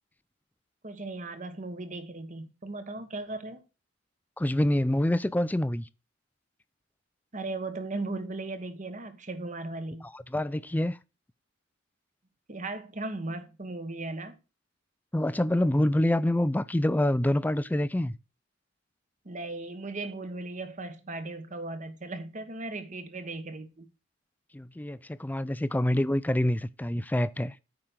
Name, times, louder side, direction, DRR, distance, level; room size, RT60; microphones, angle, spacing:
voice 1, 0.8-3.6 7.3-10.1 12.5-14.4 19.2-23.9, right 2 dB, 40° right, 1.3 m, -37 dB
voice 2, 4.4-5.9 10.1-11.0 15.1-18.2 24.5-27.5, left 1 dB, 10° left, 0.4 m, -26 dB
8.7 x 5.3 x 6.1 m
head